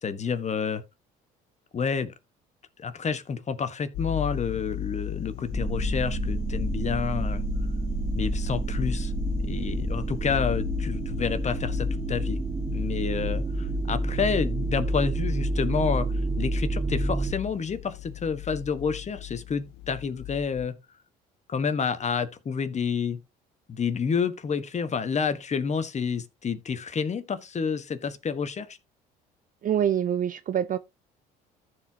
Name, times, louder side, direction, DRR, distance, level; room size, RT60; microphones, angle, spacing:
voice 1, 0.0-0.8 1.7-2.1 2.8-7.4 8.1-9.1 9.4-12.4 12.7-20.7 21.5-23.2 23.7-28.8, left 6 dB, 35° left, 1.4 m, -29 dB
sound 1, 3.9-20.7, left 15 dB, 80° left, 1.0 m, -36 dB
sound 2, 5.5-17.3, right 3 dB, 10° right, 0.9 m, -29 dB
voice 2, 29.6-30.8, right 9 dB, 45° right, 0.6 m, -25 dB
14.5 x 4.9 x 2.8 m
supercardioid pair, 75°, 20 cm